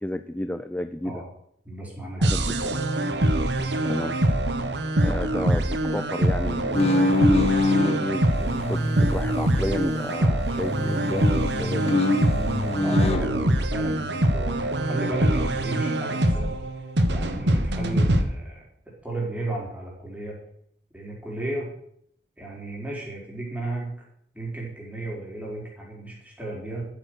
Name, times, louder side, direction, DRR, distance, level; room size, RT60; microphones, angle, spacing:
voice 1, 0.0-1.2 2.2-2.8 3.9-4.2 5.0-7.2 7.7-12.0, left 1 dB, 10° left, 10 dB, 0.5 m, -32 dB
voice 2, 1.6-2.3 3.6-3.8 12.8-16.6 17.1-20.4 20.9-21.7 22.4-23.9 24.3-26.8, right 2 dB, 10° right, -3 dB, 4.8 m, -34 dB
sound 1, 2.2-18.2, right 1 dB, 75° right, 1.4 m, -24 dB
sound 2, 6.7-8.0 8.5-10.3 10.5-13.3, left 2 dB, 35° left, 1.4 m, -24 dB
13.5 x 8.8 x 6.4 m, 0.70 s
head